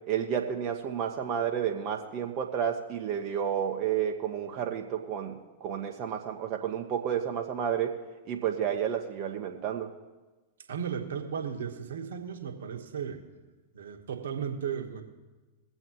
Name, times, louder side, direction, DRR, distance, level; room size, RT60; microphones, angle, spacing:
voice 1, 0.1-8.0 8.3-9.9, right 8 dB, 45° right, 1 dB, 1.1 m, -31 dB
voice 2, 10.7-13.2 13.7-15.0, right 7 dB, 75° right, 4 dB, 1.4 m, -35 dB
21.5 x 7.8 x 3.1 m, 1.2 s
hypercardioid pair, 100°, 0 cm